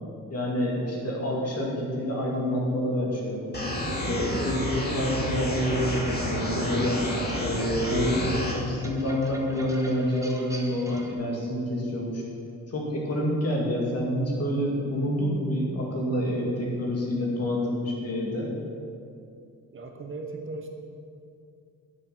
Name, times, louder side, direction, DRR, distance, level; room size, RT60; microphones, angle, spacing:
voice 1, 0.3-3.4 3.9-7.0 7.4-12.2 12.7-18.5, equal, 45° left, -3 dB, 2.4 m, -27 dB
sound 1, 3.5-8.5, equal, 30° left, 2.2 m, -30 dB
sound 2, 5.7-11.1, equal, 10° right, 1.0 m, -41 dB
voice 2, 19.7-20.7, right 3 dB, 40° right, 3 dB, 1.0 m, -37 dB
9.7 x 7.9 x 6.0 m, 2.5 s
wide cardioid pair, 160°, 33 cm